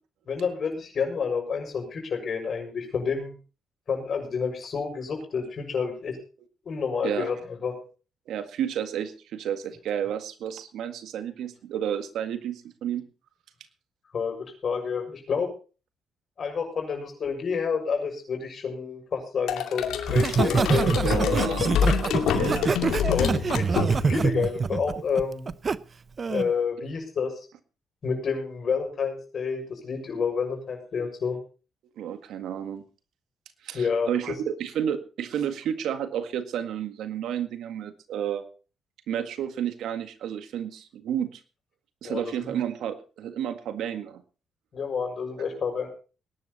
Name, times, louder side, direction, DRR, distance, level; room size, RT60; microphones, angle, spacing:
voice 1, 0.3-3.3 3.9-6.2 6.6-7.4 7.6-7.7 14.1-15.5 16.4-20.9 23.1-25.5 26.3-27.4 28.0-31.4 33.7-34.4 42.0-42.5 44.7-45.9, left 5 dB, 50° left, 4 dB, 6.8 m, -29 dB
voice 2, 8.3-13.1 21.0-21.7 22.4-22.9 32.0-32.8 33.6-38.5 39.1-41.4 42.0-44.2, right 9 dB, 80° right, 9 dB, 1.8 m, -31 dB
sound 1, 19.5-24.3, left 7 dB, 85° left, 2.3 m, -26 dB
Laughter, 20.1-25.8 26.2-26.5, right 5 dB, 40° right, 0.7 m, -25 dB
19.5 x 11.0 x 4.2 m, 0.36 s
cardioid pair, 90°, 0 cm